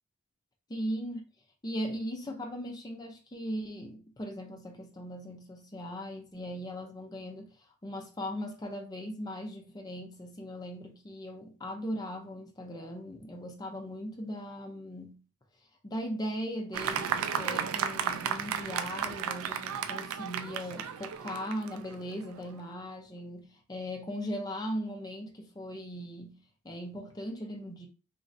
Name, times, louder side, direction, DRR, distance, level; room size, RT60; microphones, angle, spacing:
voice 1, 0.7-1.2 1.6-7.5 7.8-15.2 15.8-26.4 26.6-27.9, equal, 20° left, 0.5 m, -38 dB
Fireworks, 16.7-22.5, right 7 dB, 75° right, 0.3 m, -34 dB
3.1 x 2.6 x 2.6 m
head